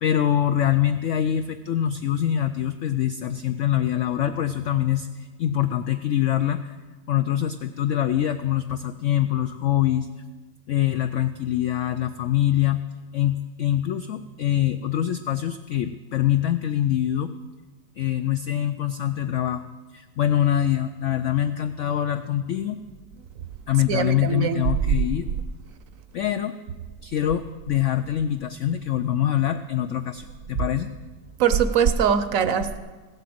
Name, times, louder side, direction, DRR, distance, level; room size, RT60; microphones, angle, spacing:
voice 1, 0.0-6.7 7.1-10.1 10.7-12.8 13.1-17.3 18.0-19.7 19.9-22.8 23.7-25.3 26.1-26.5 27.0-30.9, left 11 dB, 85° left, 9 dB, 0.6 m, -24 dB
voice 2, 23.9-24.6 31.4-32.8, right 7 dB, 60° right, 11 dB, 1.0 m, -22 dB
16.0 x 7.7 x 7.8 m, 1.4 s
omnidirectional pair, 1.9 m